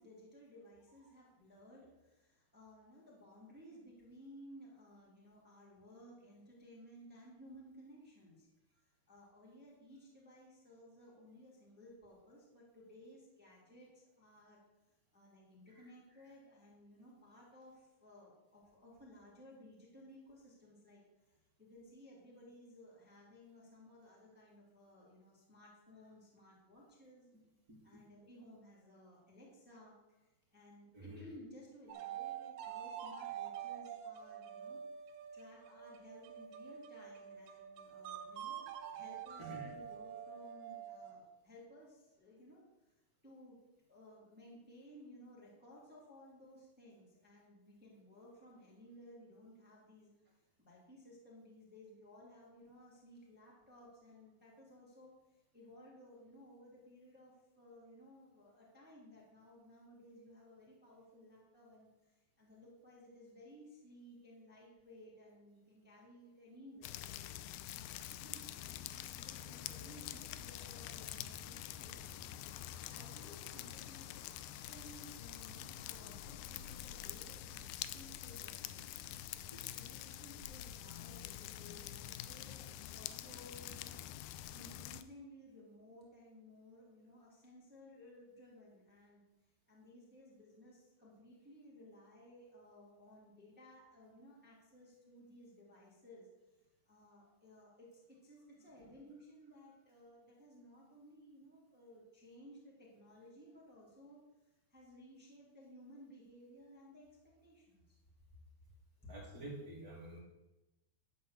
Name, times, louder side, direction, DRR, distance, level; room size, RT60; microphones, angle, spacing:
voice 1, 0.0-8.5 9.1-14.6 15.1-21.3 21.6-27.3 27.8-29.9 30.2-34.8 35.3-42.7 43.2-43.6 43.9-50.1 50.6-67.1 67.7-68.5 69.0-72.3 72.9-74.1 74.5-79.1 79.6-84.0 84.4-89.2 89.7-96.3 96.9-104.3 104.7-107.2 107.4-108.0, equal, 5° right, -5 dB, 1.9 m, -58 dB
voice 2, 27.7-28.0 30.9-31.2 39.4-39.7 79.5-79.6 98.8-98.9 109.1-110.2, right 1 dB, 30° right, -4 dB, 2.0 m, -50 dB
sound 1, 31.9-41.3, right 9 dB, 85° right, 2.7 m, -47 dB
sound 2, 66.8-85.0, left 12 dB, 85° left, 2.3 m, -46 dB
sound 3, 68.6-80.4, right 1 dB, 45° left, 3.6 m, -64 dB
12.0 x 4.3 x 7.3 m, 1.0 s
omnidirectional pair, 4.3 m